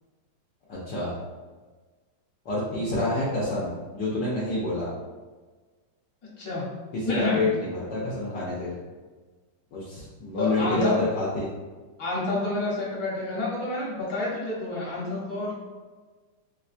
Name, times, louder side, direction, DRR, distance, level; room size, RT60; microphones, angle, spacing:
voice 1, 0.7-1.1 2.4-4.9 6.9-8.7 9.7-11.5, left 2 dB, 75° left, -7 dB, 1.3 m, -28 dB
voice 2, 6.4-6.7 7.1-7.4 10.4-11.0 12.0-15.5, left 2 dB, 55° left, -7 dB, 1.5 m, -28 dB
4.3 x 2.2 x 2.5 m, 1.3 s
omnidirectional pair, 2.0 m